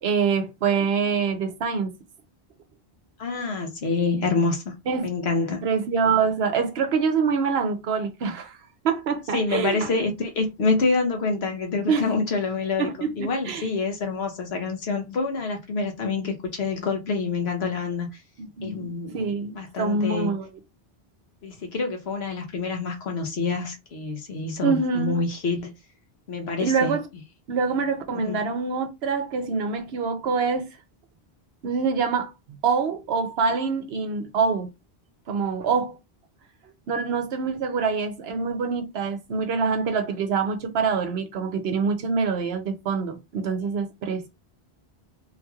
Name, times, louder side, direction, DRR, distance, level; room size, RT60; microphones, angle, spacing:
voice 1, 0.0-1.9 4.9-5.1 5.6-8.6 8.8-9.9 11.9-12.1 12.8-13.6 18.4-20.5 24.6-25.2 26.6-27.0 27.5-30.7 31.6-32.3 32.6-34.7 35.3-36.0 36.9-44.3, right 5 dB, 75° right, 0.9 m, -25 dB
voice 2, 3.2-4.7 5.0-5.6 9.3-18.1 18.6-19.2 19.5-20.3 21.4-25.7 26.3-26.9 28.1-28.5, left 4 dB, 75° left, 1.3 m, -27 dB
3.7 x 2.9 x 2.3 m
omnidirectional pair, 1.1 m